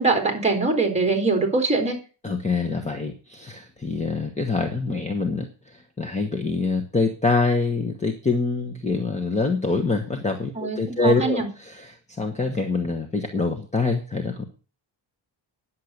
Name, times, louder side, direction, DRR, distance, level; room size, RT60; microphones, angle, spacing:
voice 1, 0.0-2.0 10.6-11.5, right 3 dB, 15° right, 4 dB, 3.6 m, -22 dB
voice 2, 2.2-14.5, left 3 dB, 15° left, 4 dB, 1.3 m, -25 dB
10.5 x 7.6 x 8.1 m, 0.36 s
wide cardioid pair, 150°, 47 cm